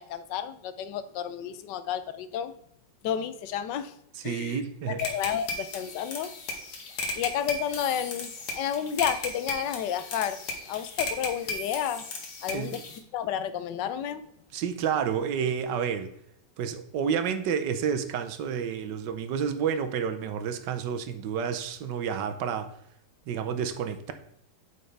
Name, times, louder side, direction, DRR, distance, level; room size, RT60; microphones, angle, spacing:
voice 1, 0.0-2.5 3.0-3.9 4.2-4.6 4.9-6.3 7.1-10.4 10.7-12.0 12.4-12.8 13.1-14.2, left 9 dB, 80° left, 1.2 m, -31 dB
voice 2, 4.1-5.0 12.5-12.8 14.5-16.1 16.6-22.7 23.3-24.1, right 7 dB, 75° right, 1.4 m, -30 dB
sound 1, 5.0-13.0, left 3 dB, 65° left, 1.7 m, -36 dB
8.6 x 5.2 x 3.3 m
omnidirectional pair, 1.9 m